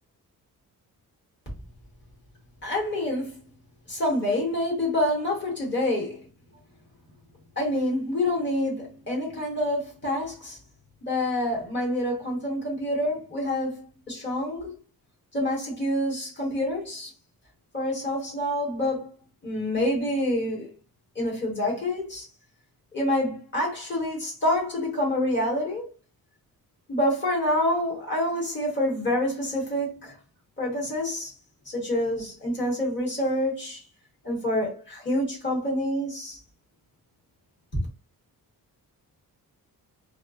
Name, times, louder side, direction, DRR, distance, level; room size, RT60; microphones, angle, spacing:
voice 1, 2.6-3.4 3.9-6.1 7.6-10.6 11.0-14.7 15.3-17.1 17.7-19.1 19.4-20.7 21.1-22.3 22.9-25.9 26.9-30.2 30.6-31.3 31.6-33.8 34.2-36.4 37.7-37.9, left 1 dB, 30° left, 1.2 m, -27 dB
2.4 x 2.3 x 2.4 m
wide cardioid pair, 155°, 36 cm